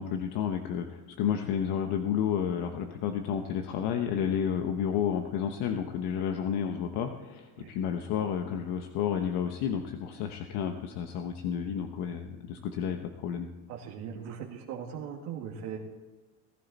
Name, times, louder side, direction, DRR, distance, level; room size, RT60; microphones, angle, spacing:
voice 1, 0.0-13.5, left 8 dB, 70° left, 5 dB, 1.1 m, -31 dB
voice 2, 13.7-15.8, right 8 dB, 80° right, -2 dB, 2.1 m, -39 dB
19.0 x 11.0 x 4.2 m, 1.1 s
cardioid pair, 135°, 42 cm